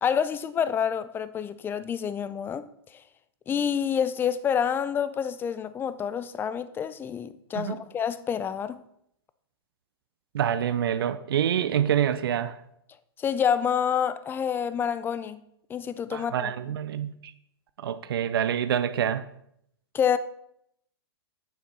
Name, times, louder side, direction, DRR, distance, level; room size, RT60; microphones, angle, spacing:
voice 1, 0.0-2.6 3.5-8.8 13.2-15.4 15.7-16.5 19.9-20.2, left 8 dB, 15° left, 0.4 m, -27 dB
voice 2, 10.3-12.6 16.1-17.3 17.8-19.2, right 9 dB, 65° right, 0.6 m, -26 dB
8.5 x 7.2 x 4.1 m
hypercardioid pair, 110°, 13 cm